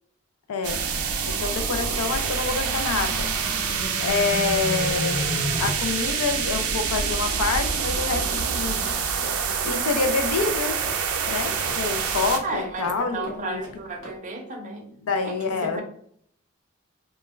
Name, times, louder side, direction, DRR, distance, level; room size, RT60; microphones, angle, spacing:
sound 1, 0.6-12.4, right 6 dB, 85° right, 0.4 m, -26 dB
voice 1, 1.2-3.3 4.0-5.3 5.6-8.9 9.6-10.8 11.3-13.6 15.0-15.8, left 4 dB, 85° left, 6 dB, 0.4 m, -27 dB
sound 2, 2.5-5.7, left 1 dB, 40° left, 0.6 m, -32 dB
sound 3, 9.2-14.2, equal, 65° left, 0.9 m, -43 dB
voice 2, 12.4-14.8 15.2-15.8, right 3 dB, 35° right, 3 dB, 0.5 m, -33 dB
2.2 x 2.2 x 3.0 m, 0.62 s
head